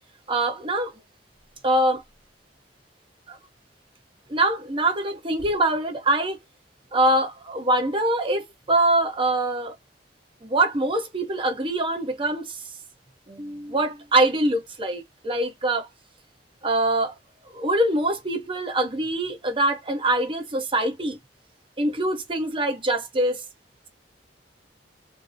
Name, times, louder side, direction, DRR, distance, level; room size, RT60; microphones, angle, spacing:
voice 1, 0.3-0.9 1.6-2.0 3.3-3.4 4.3-6.4 6.9-9.7 10.4-12.6 13.3-15.9 16.6-17.1 17.5-21.2 21.8-23.4, right 1 dB, 30° right, 0.7 m, -24 dB
2.7 x 2.0 x 2.4 m
head